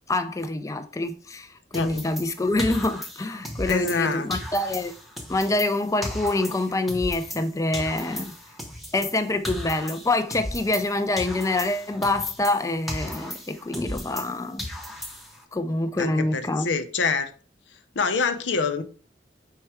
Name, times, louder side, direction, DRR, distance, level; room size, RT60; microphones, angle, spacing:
voice 1, 0.1-4.9 5.3-8.3 8.9-14.7 15.5-16.7, left 2 dB, 20° left, 0.4 m, -26 dB
voice 2, 1.7-2.1 3.7-4.3 16.0-17.3 18.0-18.8, left 4 dB, 90° left, 0.7 m, -26 dB
sound 1, 1.7-4.0 4.3-7.5 7.7-10.9 11.2-14.3 14.6-15.4, left 1 dB, ahead, 0.9 m, -36 dB
4.6 x 4.4 x 4.7 m
head